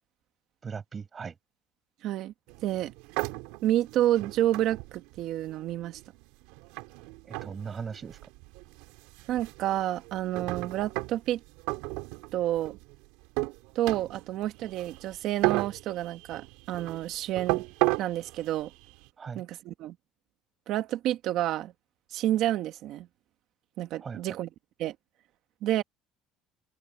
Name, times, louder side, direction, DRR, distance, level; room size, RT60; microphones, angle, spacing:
voice 1, 0.6-1.4 7.3-8.2 19.2-19.4 24.0-24.4, right 6 dB, 25° right, 6.5 m, -38 dB
voice 2, 2.0-2.3 2.6-2.9 3.6-6.0 9.3-11.4 12.3-12.7 13.8-17.6 18.0-18.7 19.3-20.0 20.7-21.7 22.1-23.1 23.8-24.5 24.8-25.0 25.6-25.8, right 13 dB, 55° right, 2.1 m, -29 dB
sound 1, 2.5-19.1, right 24 dB, 85° right, 3.7 m, -35 dB
open air
cardioid pair, 155°, 0 cm